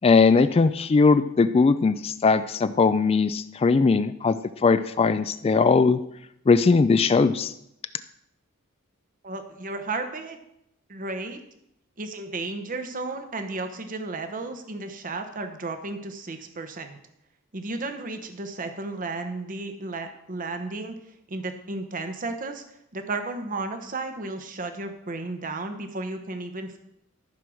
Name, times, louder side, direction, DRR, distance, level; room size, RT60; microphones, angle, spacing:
voice 1, 0.0-6.0 6.5-7.5, left 4 dB, 30° left, 12 dB, 0.3 m, -20 dB
voice 2, 9.2-10.4 10.9-11.4 12.0-17.0 17.5-20.9 21.3-22.6 22.9-26.8, right 3 dB, 40° right, 7 dB, 0.9 m, -33 dB
13.5 x 4.6 x 6.2 m, 0.79 s
head